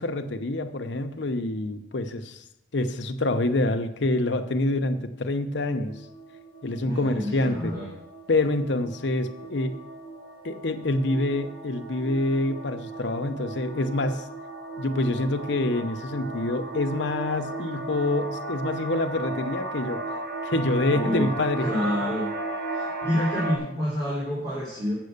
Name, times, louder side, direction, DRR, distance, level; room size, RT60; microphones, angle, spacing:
voice 1, 0.0-2.4 2.7-5.9 6.6-7.8 8.3-9.8 10.4-14.2 14.8-20.0 20.4-21.9, left 2 dB, 60° left, 7 dB, 0.7 m, -26 dB
sound 1, 5.8-23.6, right 2 dB, 50° right, 1.3 m, -36 dB
voice 2, 6.8-7.9 20.9-21.2 21.6-22.3 22.7-24.9, left 1 dB, 20° right, -9 dB, 2.6 m, -28 dB
7.6 x 6.6 x 6.5 m, 0.84 s
head